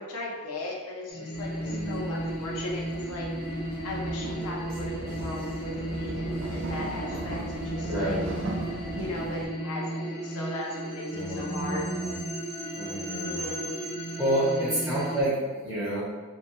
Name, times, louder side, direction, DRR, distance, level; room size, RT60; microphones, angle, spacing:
voice 1, 0.0-3.3 3.8-8.2 8.9-11.9 13.2-13.8 14.4-14.6, left 2 dB, 80° left, -2 dB, 0.5 m, -37 dB
sound 1, 1.1-15.2, right 1 dB, 50° left, 0.9 m, -34 dB
sound 2, 1.3-9.5, right 1 dB, 60° right, 0.4 m, -38 dB
voice 2, 1.6-2.1 7.8-8.3 11.1-12.1 12.8-13.4 14.2-16.1, right 1 dB, 5° right, -9 dB, 0.6 m, -29 dB
2.8 x 2.1 x 2.5 m, 1.4 s
head